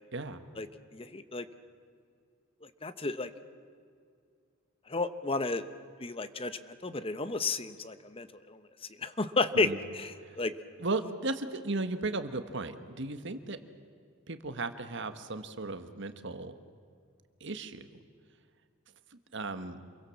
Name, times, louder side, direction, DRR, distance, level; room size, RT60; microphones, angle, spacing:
voice 1, 0.9-1.4 2.8-3.3 4.9-5.6 6.0-8.6 9.0-10.5, left 3 dB, 30° left, 12 dB, 1.0 m, -32 dB
voice 2, 10.8-13.6 14.3-16.6 17.4-17.9 19.1-19.8, right 3 dB, 60° right, 9 dB, 1.5 m, -36 dB
27.5 x 23.0 x 7.2 m, 2.2 s
head